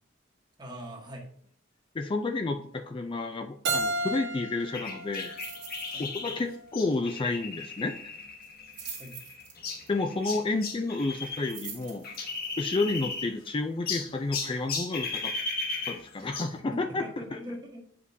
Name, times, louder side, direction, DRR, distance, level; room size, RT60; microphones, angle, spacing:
voice 1, 0.6-1.3 5.9-6.1 9.0-9.2 16.2-16.5 16.9-17.8, equal, 25° right, 1 dB, 1.3 m, -42 dB
voice 2, 1.9-5.3 6.0-8.0 9.9-12.0 12.6-15.3 15.9-17.4, left 3 dB, 25° left, 5 dB, 0.4 m, -31 dB
Keyboard (musical), 3.6-6.5, right 2 dB, 70° right, 1.2 m, -33 dB
sound 1, 4.7-11.6 11.8-13.5 13.9-16.6, left 4 dB, 50° left, 1.1 m, -36 dB
sound 2, 5.1-6.0 6.3-6.5 6.8-6.9 8.4-9.9 11.2-12.5 13.0-13.1, right 6 dB, 45° right, 2.0 m, -44 dB
8.1 x 5.1 x 2.6 m, 0.65 s
head